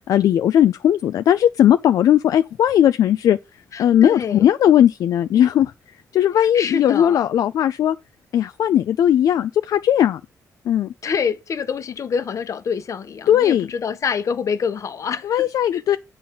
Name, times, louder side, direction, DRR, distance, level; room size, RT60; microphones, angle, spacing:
voice 1, 0.1-3.4 3.8-5.7 6.1-8.0 8.3-10.2 10.7-10.9 13.3-13.7 15.2-16.0, left 10 dB, 75° left, 0.4 m, -17 dB
voice 2, 3.7-4.5 6.4-7.2 11.0-15.5 15.7-16.0, left 6 dB, 60° left, 1.1 m, -26 dB
8.5 x 4.0 x 7.0 m
cardioid pair, 75°, 6 cm